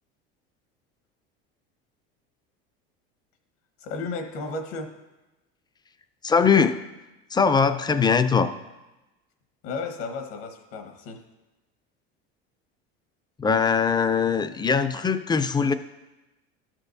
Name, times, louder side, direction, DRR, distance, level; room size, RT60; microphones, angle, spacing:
voice 1, 3.8-4.9 9.6-11.2, left 3 dB, 75° left, 5 dB, 1.3 m, -33 dB
voice 2, 6.2-6.8 7.3-8.5 13.4-15.7, left 6 dB, 15° left, 11 dB, 0.4 m, -21 dB
12.5 x 6.1 x 2.7 m, 1.1 s
supercardioid pair, 95°, 30 cm